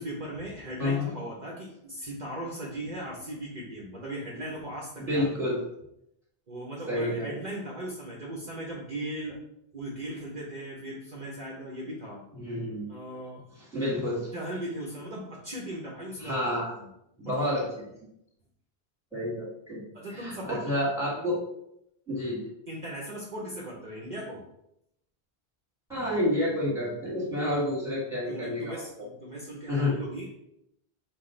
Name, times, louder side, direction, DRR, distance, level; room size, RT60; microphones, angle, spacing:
voice 1, 0.0-5.2 6.5-9.4 9.7-12.2 12.9-13.5 14.3-16.5 16.8-16.9 17.2-17.7 19.9-20.7 22.7-24.4 28.3-30.4, right 1 dB, 50° right, -3 dB, 0.9 m, -38 dB
voice 2, 0.8-1.1 5.0-5.6 6.9-7.3 12.3-12.9 13.7-14.3 16.2-16.7 17.2-17.6 19.1-19.8 20.1-21.4 22.1-22.5 25.9-29.0 29.7-29.9, left 1 dB, 5° right, -6 dB, 1.6 m, -29 dB
6.0 x 2.3 x 3.7 m, 0.79 s
omnidirectional pair, 1.0 m